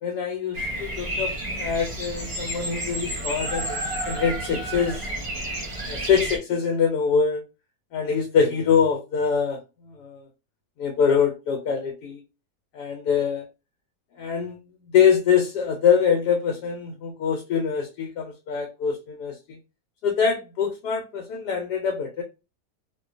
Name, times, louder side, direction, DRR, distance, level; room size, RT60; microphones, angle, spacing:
voice 1, 0.0-5.0 5.9-7.4 7.9-9.6 9.9-10.2 10.8-12.2 12.7-13.4 14.2-14.6 14.9-19.6 20.0-22.2, left 7 dB, 75° left, 1.1 m, -24 dB
Bird vocalization bird call bird song, 0.5-6.4, right 1 dB, 50° right, 0.4 m, -31 dB
2.7 x 2.2 x 2.4 m
omnidirectional pair, 1.9 m